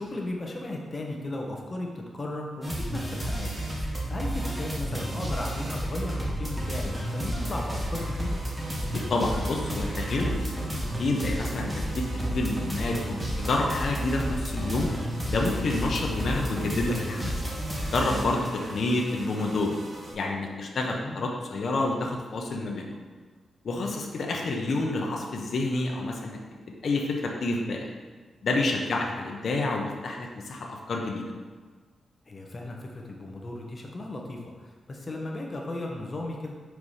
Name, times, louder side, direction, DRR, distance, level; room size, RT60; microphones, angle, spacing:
voice 1, 0.0-8.4 18.4-18.5 21.0-21.2 28.9-29.0 32.2-36.5, left 2 dB, 35° left, 0 dB, 1.2 m, -36 dB
sound 1, 2.6-18.7, right 1 dB, 15° right, 1.5 m, -32 dB
sound 2, 6.4-20.1, right 1 dB, 65° right, 1.9 m, -43 dB
voice 2, 8.9-14.9 15.3-17.4 17.9-19.8 20.1-23.0 23.6-26.4 26.8-27.9 28.4-31.3, left 2 dB, 60° left, 0 dB, 1.0 m, -29 dB
4.8 x 4.8 x 5.6 m, 1.5 s
cardioid pair, 105°, 0 cm